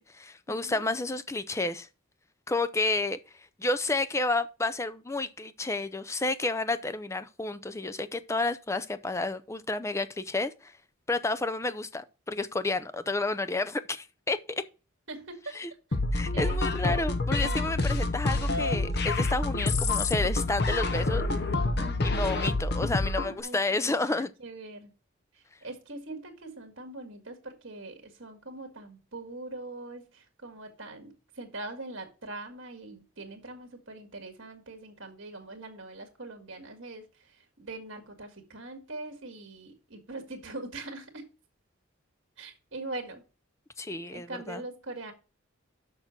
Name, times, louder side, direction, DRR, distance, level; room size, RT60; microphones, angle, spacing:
voice 1, 0.1-1.9 2.5-3.2 3.6-10.7 11.1-14.6 15.5-15.7 16.1-21.2 22.0-24.3 43.8-44.6, left 2 dB, 15° left, 0.4 m, -30 dB
voice 2, 15.1-15.6 15.9-16.0 16.3-16.6 21.8-22.2 23.4-24.9 25.6-37.0 37.6-41.3 42.4-43.2 43.9-45.1, right 2 dB, 60° right, 1.9 m, -42 dB
sound 1, 15.9-23.3, left 2 dB, 50° left, 0.9 m, -27 dB
6.6 x 6.0 x 5.9 m
head